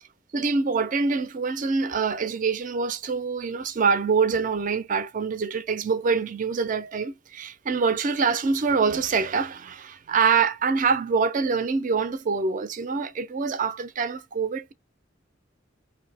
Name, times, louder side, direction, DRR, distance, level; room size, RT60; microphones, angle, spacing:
voice 1, 0.3-14.7, right 5 dB, 45° right, 0.4 m, -25 dB
2.6 x 2.6 x 3.3 m
head